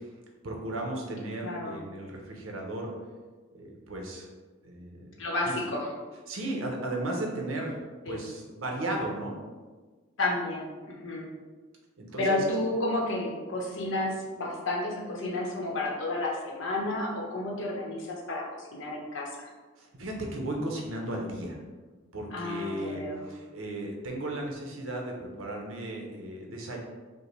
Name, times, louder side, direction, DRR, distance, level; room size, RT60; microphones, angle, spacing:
voice 1, 0.4-2.9 3.5-4.3 4.6-5.5 6.3-7.8 8.1-9.3 12.0-12.4 19.8-21.6 22.1-26.8, right 1 dB, 75° right, 0 dB, 0.8 m, -35 dB
voice 2, 1.4-1.8 5.2-5.9 8.0-8.2 10.2-11.3 12.2-19.3 22.3-23.3, left 2 dB, 65° left, -2 dB, 0.9 m, -31 dB
5.4 x 2.1 x 3.2 m, 1.4 s
head